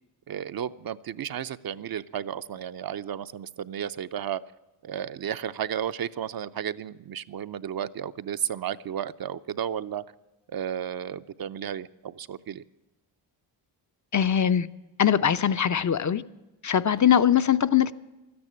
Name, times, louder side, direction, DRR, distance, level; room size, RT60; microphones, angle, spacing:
voice 1, 0.3-4.4 4.8-10.0 10.5-12.6, right 9 dB, 45° right, 0.6 m, -33 dB
voice 2, 14.1-14.7 15.0-16.2 16.6-17.9, left 9 dB, 35° left, 0.6 m, -21 dB
13.0 x 9.7 x 8.6 m
supercardioid pair, 50°, 50 cm